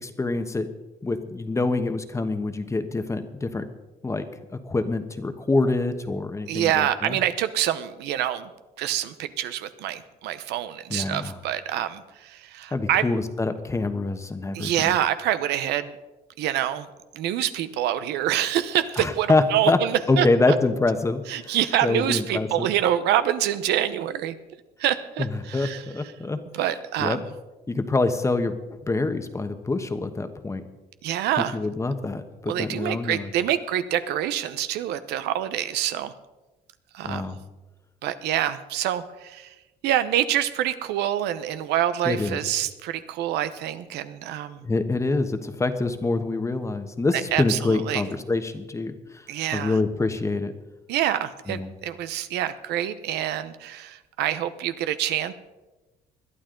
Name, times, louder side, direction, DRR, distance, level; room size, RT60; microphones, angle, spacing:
voice 1, 0.0-0.7 1.0-3.6 4.0-4.2 4.5-7.2 10.9-11.4 12.7-14.9 19.0-19.8 20.1-21.6 21.8-22.7 25.2-26.4 26.6-27.2 27.7-30.6 31.5-33.3 37.0-37.4 42.0-42.4 44.6-49.3 49.5-50.5 51.5-51.7, left 3 dB, 15° left, 9 dB, 1.2 m, -26 dB
voice 2, 6.5-8.5 8.8-13.0 14.5-15.9 16.4-16.9 17.1-20.5 21.3-24.3 24.8-25.8 26.5-27.2 31.0-31.6 32.5-36.1 36.9-37.4 38.0-39.5 39.8-44.6 47.3-48.0 49.3-49.8 50.9-55.3, right 11 dB, 85° right, 12 dB, 0.9 m, -26 dB
21.0 x 12.0 x 3.9 m, 1.1 s
cardioid pair, 110°, 17 cm